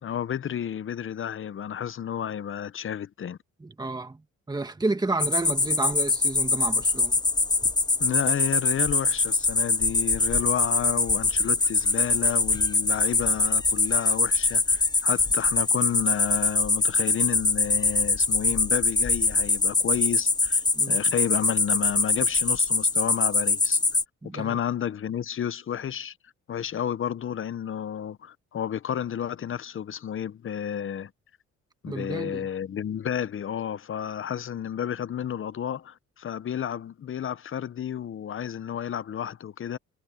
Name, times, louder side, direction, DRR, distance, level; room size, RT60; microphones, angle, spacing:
voice 1, 0.0-3.4 8.0-23.8 24.3-26.1 26.5-31.1 31.8-39.8, left 9 dB, 45° left, 0.8 m, -31 dB
voice 2, 3.6-4.2 4.5-7.2 20.7-21.0 24.2-24.6 31.8-32.5, right 2 dB, 15° right, 1.7 m, -31 dB
sound 1, 5.2-24.0, left 3 dB, 15° left, 0.7 m, -23 dB
cardioid pair, 105°, 29 cm